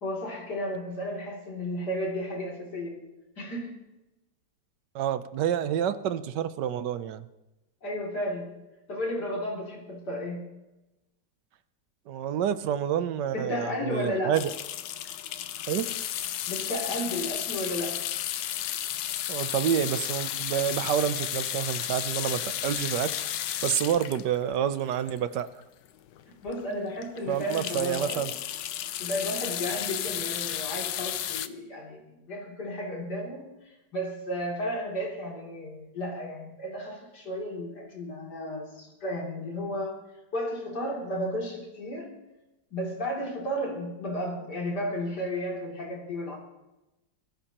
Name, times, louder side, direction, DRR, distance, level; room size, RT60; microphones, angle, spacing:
voice 1, 0.0-3.1 3.4-3.9 7.8-8.6 8.9-10.6 13.3-14.4 16.5-18.0 26.3-28.3 29.0-32.0 32.3-42.2 42.7-46.4, equal, 65° left, -2 dB, 3.5 m, -33 dB
voice 2, 4.9-7.2 12.1-14.5 15.7-15.9 19.3-23.1 23.6-25.5 27.3-28.3, right 9 dB, 75° right, 13 dB, 1.3 m, -28 dB
sound 1, 14.3-25.6 26.1-26.2 26.5-26.6 27.0-31.5, left 11 dB, 85° left, 1.3 m, -33 dB
22.0 x 14.5 x 2.9 m, 1.0 s
omnidirectional pair, 1.9 m